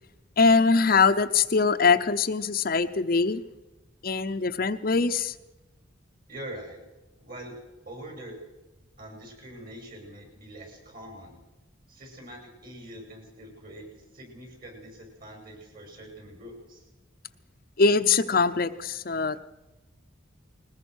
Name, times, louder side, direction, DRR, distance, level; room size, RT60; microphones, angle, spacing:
voice 1, 0.4-3.4 4.0-5.3 17.8-19.4, left 4 dB, 50° left, 9 dB, 0.8 m, -22 dB
voice 2, 6.3-6.8 7.2-7.6 7.8-8.4 9.0-11.4 11.9-16.9, right 1 dB, 50° right, 2 dB, 7.0 m, -44 dB
21.0 x 20.0 x 6.4 m, 1.0 s
head